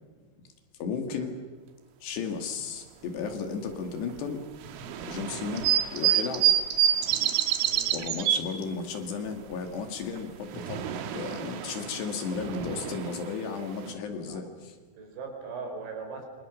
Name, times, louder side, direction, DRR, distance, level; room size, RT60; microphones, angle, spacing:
voice 1, 0.8-1.4 2.0-4.4 5.0-6.5 7.9-14.8, left 5 dB, 60° left, 6 dB, 4.1 m, -34 dB
sound 1, 4.6-8.4 10.2-13.9, right 10 dB, 80° right, 4.0 m, -28 dB
voice 2, 7.6-7.9 14.3-14.5 15.0-16.3, right 4 dB, 65° right, 3 dB, 6.9 m, -39 dB
27.5 x 26.5 x 6.5 m, 1.4 s
omnidirectional pair, 5.7 m